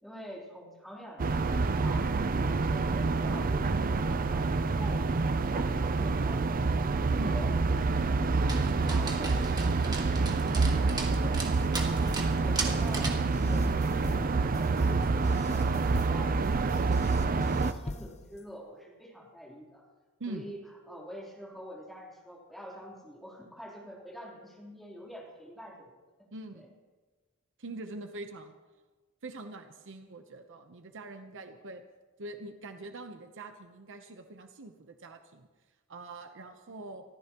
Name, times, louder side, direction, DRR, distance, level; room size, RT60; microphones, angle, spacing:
voice 1, 0.0-2.1 2.4-6.4 6.9-8.2 8.8-11.5 12.0-19.8 20.3-20.6 20.9-25.9 26.6-26.7 36.7-36.8, equal, ahead, -4 dB, 3.6 m, -46 dB
sound 1, 1.2-17.7, right 3 dB, 40° right, 0.5 m, -27 dB
Dog, 8.5-13.3, right 3 dB, 20° right, 1.6 m, -38 dB
sound 2, 11.1-18.4, left 2 dB, 30° left, 0.7 m, -43 dB
voice 2, 26.3-26.7 27.6-28.6 29.2-31.8 32.2-35.5 35.9-37.0, right 2 dB, 60° right, 7 dB, 0.9 m, -43 dB
25.0 x 14.0 x 3.0 m, 1.3 s
head